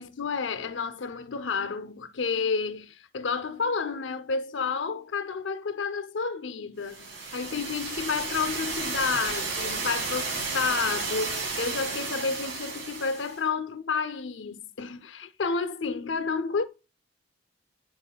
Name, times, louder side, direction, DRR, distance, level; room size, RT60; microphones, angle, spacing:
voice 1, 0.0-16.7, left 5 dB, 80° left, 0.6 m, -30 dB
sound 1, 6.9-13.4, right 4 dB, 70° right, 2.2 m, -33 dB
10.0 x 4.7 x 2.2 m
head